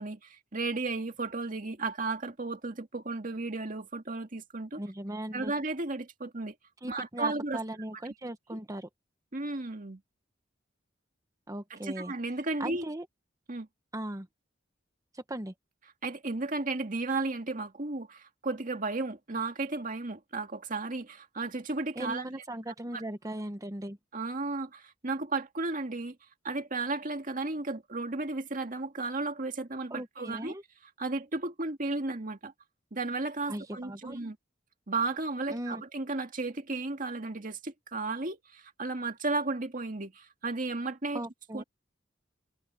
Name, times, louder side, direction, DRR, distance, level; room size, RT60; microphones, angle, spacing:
voice 1, 0.0-4.8 5.3-6.5 6.9-7.6 9.3-10.0 11.7-12.9 13.5-13.7 16.0-22.2 22.9-23.0 24.1-26.2 26.4-30.6 31.0-32.5 32.9-34.4 34.9-41.2 41.5-41.6, right 3 dB, 45° right, 2.1 m, -34 dB
voice 2, 4.8-5.5 6.8-8.9 11.5-12.1 12.6-13.0 13.9-14.3 15.1-15.5 22.0-24.0 29.9-30.6 33.5-34.2 35.5-35.8 41.1-41.6, right 1 dB, 20° right, 1.1 m, -38 dB
head